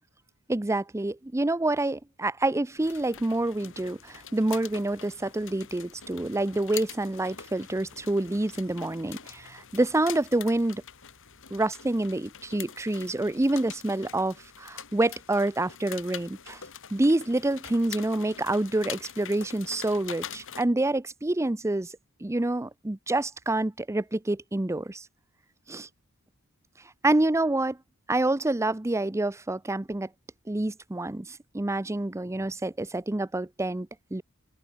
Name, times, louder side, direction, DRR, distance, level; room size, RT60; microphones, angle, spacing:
voice 1, 0.5-10.8 11.5-16.6 16.9-21.9 22.2-25.1 25.7-25.9 27.0-27.8 28.1-30.1 30.5-34.2, right 2 dB, 15° right, 0.6 m, -27 dB
sound 1, 2.8-20.6, left 9 dB, 60° left, 2.9 m, -44 dB
open air
head